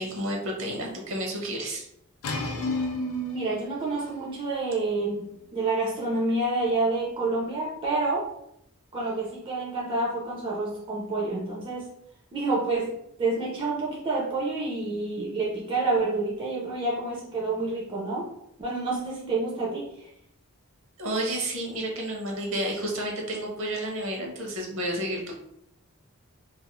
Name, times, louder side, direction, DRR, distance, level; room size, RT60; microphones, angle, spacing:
voice 1, 0.0-1.9 21.0-25.3, right 1 dB, 60° right, 0 dB, 0.7 m, -31 dB
sound 1, 2.2-7.9, left 2 dB, 70° left, 0.4 m, -40 dB
voice 2, 2.6-8.3 8.9-11.9 12.3-18.3 18.6-20.1, right 2 dB, 20° right, -4 dB, 0.4 m, -28 dB
2.4 x 2.3 x 2.9 m, 0.76 s
head